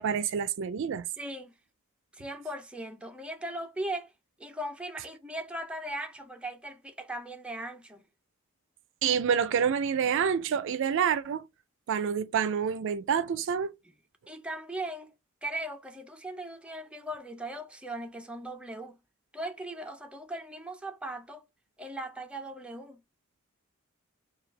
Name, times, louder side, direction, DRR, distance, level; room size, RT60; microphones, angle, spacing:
voice 1, 0.0-1.0 9.0-11.4 11.9-13.7, right 7 dB, 65° right, 0.4 m, -27 dB
voice 2, 1.2-1.5 2.1-4.1 4.4-8.0 14.3-15.1 15.4-19.0 19.3-21.4 21.8-23.0, right 1 dB, 5° right, 0.5 m, -38 dB
4.5 x 2.3 x 3.2 m
head